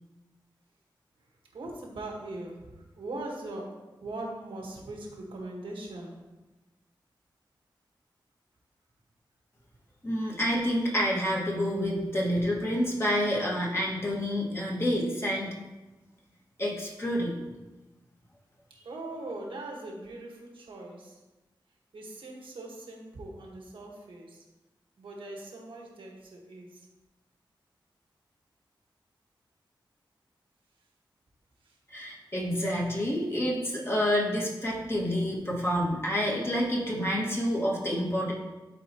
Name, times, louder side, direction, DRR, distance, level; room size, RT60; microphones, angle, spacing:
voice 1, 1.5-6.2 18.8-21.2 21.9-24.4 25.0-26.8 31.6-31.7, right 2 dB, 90° right, -1 dB, 1.4 m, -41 dB
voice 2, 10.0-15.5 16.6-17.4 31.9-38.3, equal, 30° left, -4 dB, 1.8 m, -28 dB
11.5 x 4.2 x 3.0 m, 1.1 s
wide cardioid pair, 85°, 9 cm